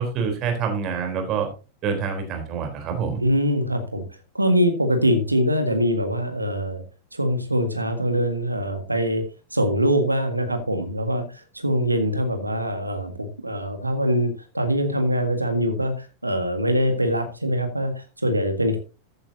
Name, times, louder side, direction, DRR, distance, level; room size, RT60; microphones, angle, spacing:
voice 1, 0.0-1.5 1.8-3.2, right 6 dB, 35° right, 4 dB, 3.7 m, -26 dB
voice 2, 3.2-4.0 4.3-6.8 7.1-9.2 9.5-18.8, equal, 85° right, 7 dB, 1.7 m, -23 dB
14.0 x 8.8 x 2.8 m, 0.31 s
figure-of-eight pair, 90°, 0 cm